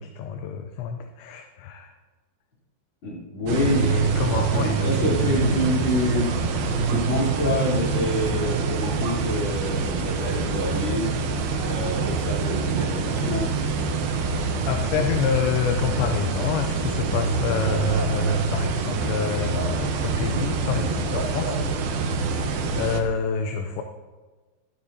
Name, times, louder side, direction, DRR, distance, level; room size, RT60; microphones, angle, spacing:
voice 1, 0.0-1.9 3.6-5.7 14.7-21.6 22.4-23.8, left 7 dB, 80° left, 5 dB, 2.7 m, -28 dB
voice 2, 3.0-6.3 6.7-11.1 11.5-13.5, left 1 dB, 30° left, -6 dB, 3.8 m, -27 dB
sound 1, 3.5-23.0, right 4 dB, 80° right, 2.1 m, -25 dB
13.5 x 12.5 x 2.8 m, 1.3 s
omnidirectional pair, 5.6 m